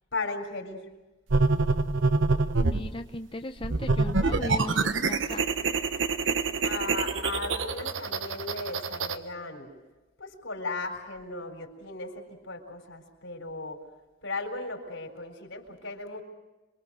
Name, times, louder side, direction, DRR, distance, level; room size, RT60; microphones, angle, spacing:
voice 1, 0.1-0.9 6.6-9.7 10.2-13.8 14.2-16.2, left 3 dB, 85° left, 4 dB, 4.3 m, -36 dB
sound 1, 1.3-2.9 3.6-9.2, right 3 dB, 85° right, 1.0 m, -26 dB
voice 2, 2.6-5.5, left 1 dB, 30° left, 6 dB, 0.8 m, -37 dB
28.0 x 23.0 x 6.3 m, 1.1 s
head